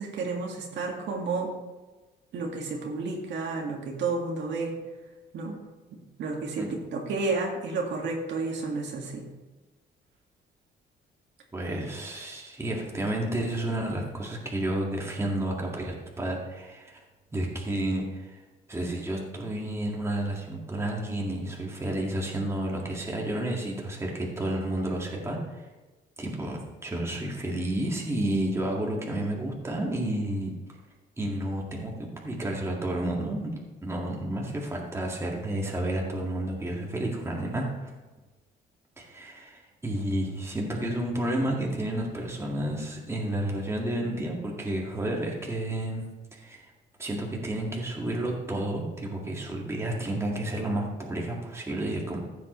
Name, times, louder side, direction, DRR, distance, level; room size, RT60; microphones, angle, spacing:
voice 1, 0.0-1.5 2.3-4.8 5.3-5.6 6.2-9.3, right 3 dB, 70° right, 0 dB, 1.9 m, -31 dB
voice 2, 11.5-17.0 17.3-18.4 18.7-25.7 26.2-30.5 31.2-37.9 39.0-46.1 46.3-46.6 47.0-52.3, right 1 dB, 15° right, -2 dB, 1.9 m, -31 dB
15.0 x 7.6 x 3.2 m, 1.2 s
cardioid pair, 130°, 19 cm